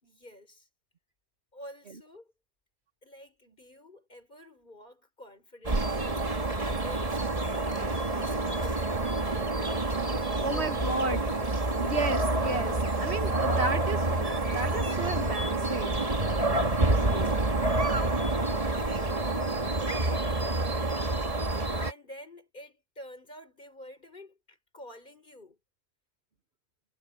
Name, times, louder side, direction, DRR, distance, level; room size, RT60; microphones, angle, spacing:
voice 1, 0.0-0.7 1.5-2.3 3.0-7.8 8.2-9.5 10.1-11.2 16.9-21.1 21.8-25.6, left 1 dB, 45° left, 4.9 m, -49 dB
sound 1, 5.6-21.9, right 2 dB, 30° right, 1.8 m, -28 dB
voice 2, 10.4-11.2 11.8-16.1, right 2 dB, 65° right, 2.0 m, -33 dB
omnidirectional pair, 1.2 m